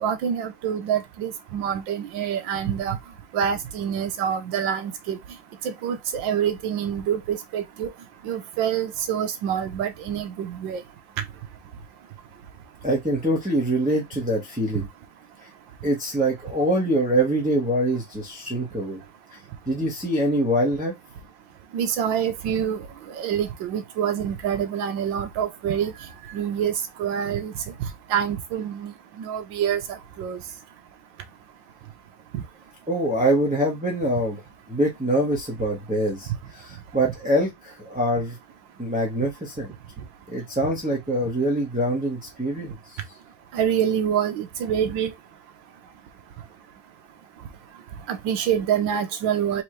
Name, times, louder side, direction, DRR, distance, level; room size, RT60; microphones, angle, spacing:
voice 1, 0.0-3.0 3.3-5.2 5.6-7.9 8.2-10.8 21.7-25.9 26.3-27.5 28.1-30.4 32.3-32.4 43.5-45.1 48.1-49.6, right 8 dB, 70° right, 1.4 m, -26 dB
voice 2, 12.8-14.9 15.8-19.0 19.7-20.9 32.9-34.4 34.7-38.4 38.8-39.7 40.3-43.0, right 1 dB, 5° right, 1.0 m, -24 dB
4.5 x 3.4 x 3.1 m
omnidirectional pair, 2.2 m